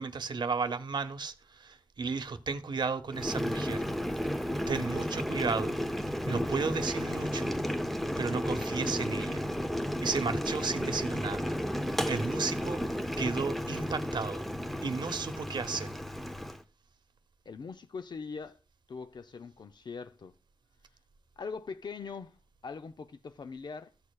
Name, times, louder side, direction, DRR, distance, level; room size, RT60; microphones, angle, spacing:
voice 1, 0.0-3.9 4.7-5.8 6.3-7.5 8.2-9.5 10.0-11.6 12.1-14.5 14.8-15.9, right 4 dB, 70° right, 0.8 m, -34 dB
Boiling, 3.1-16.6, equal, ahead, 0.7 m, -33 dB
voice 2, 17.5-18.6 18.9-20.3 21.4-22.4 22.6-23.9, left 5 dB, 65° left, 0.5 m, -41 dB
15.0 x 6.6 x 2.3 m
wide cardioid pair, 110°, 8 cm